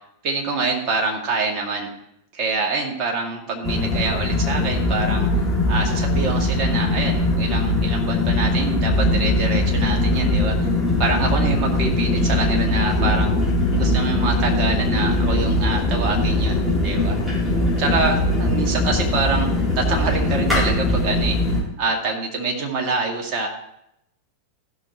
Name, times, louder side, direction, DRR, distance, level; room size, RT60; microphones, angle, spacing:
voice 1, 0.2-1.9 2.3-5.3 5.7-10.7 11.0-13.3 13.7-17.2 17.8-21.4 21.8-23.5, right 3 dB, 40° right, 1 dB, 2.2 m, -25 dB
sound 1, 3.6-21.6, left 2 dB, 5° right, 3.4 m, -21 dB
15.5 x 6.0 x 4.4 m, 0.80 s
figure-of-eight pair, 90°, 0 cm